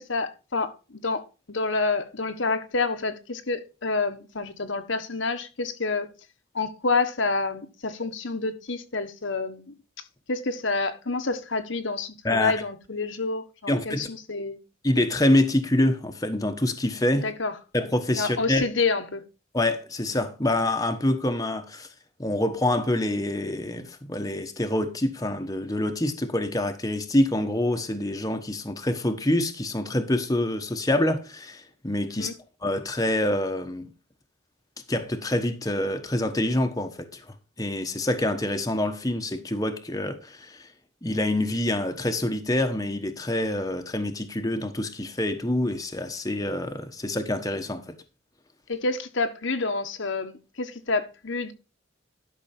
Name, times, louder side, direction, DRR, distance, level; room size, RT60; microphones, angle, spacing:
voice 1, 0.0-6.1 6.5-9.7 10.3-14.6 17.2-17.5 18.2-19.2 32.1-32.3 48.7-51.5, left 3 dB, 65° left, 1.3 m, -28 dB
voice 2, 13.7-14.1 14.8-17.3 17.7-18.6 19.5-21.9 22.2-32.3 32.6-33.9 34.9-37.3 37.6-40.7 41.0-47.9, left 1 dB, 15° left, 1.1 m, -26 dB
12.0 x 6.1 x 4.3 m
head